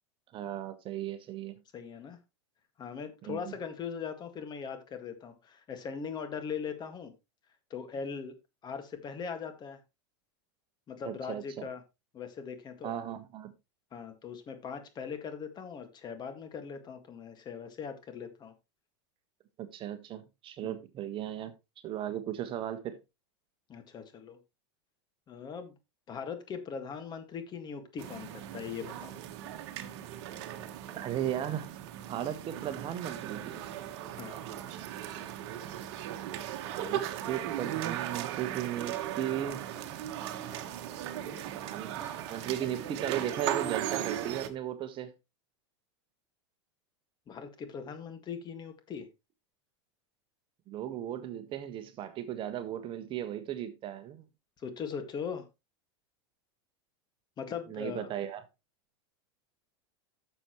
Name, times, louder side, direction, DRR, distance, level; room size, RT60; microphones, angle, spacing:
voice 1, 0.3-1.5 3.3-3.6 11.0-11.7 12.8-13.5 19.6-21.5 21.8-23.0 30.9-31.7 32.1-33.6 36.0-39.7 41.5-41.9 42.3-45.1 50.7-54.2 57.7-58.4, right 11 dB, 35° right, 1.3 m, -36 dB
voice 2, 1.7-2.2 2.8-7.1 7.7-9.8 10.9-11.8 12.1-13.0 13.9-18.5 20.6-20.8 23.7-24.4 25.3-25.7 26.1-29.1 34.2-34.4 47.3-49.1 54.6-55.5 57.4-58.1, left 6 dB, 30° left, 1.9 m, -40 dB
sound 1, 28.0-44.5, right 11 dB, 60° right, 1.3 m, -38 dB
sound 2, 39.7-44.3, right 4 dB, 15° right, 3.6 m, -49 dB
11.5 x 6.9 x 3.1 m
hypercardioid pair, 120°, 15 cm